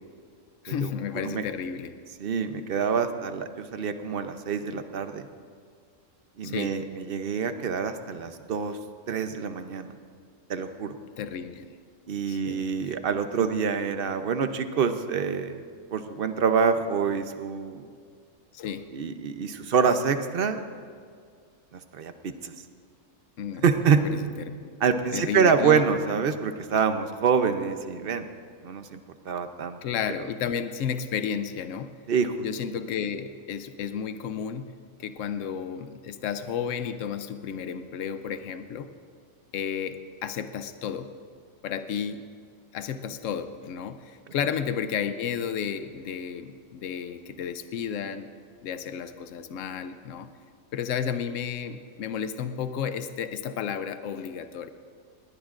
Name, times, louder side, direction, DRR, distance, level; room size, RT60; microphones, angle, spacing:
voice 1, 0.6-1.9 6.4-6.8 11.2-11.7 12.3-13.0 18.5-18.9 23.4-23.6 23.9-24.1 24.4-24.7 25.1-25.8 29.8-31.9 32.4-34.7 35.0-38.9 39.5-41.1 41.6-42.2 42.7-48.3 48.6-50.3 50.7-54.7, left 7 dB, 75° left, 10 dB, 1.0 m, -32 dB
voice 2, 2.2-5.3 6.4-8.8 9.1-9.9 10.5-11.0 12.1-15.6 15.9-17.9 18.9-20.6 21.7-22.5 23.6-24.0 24.8-28.3 28.6-29.8 32.1-32.4, right 6 dB, 50° right, 9 dB, 0.8 m, -26 dB
20.0 x 17.5 x 2.5 m, 2.1 s
omnidirectional pair, 1.4 m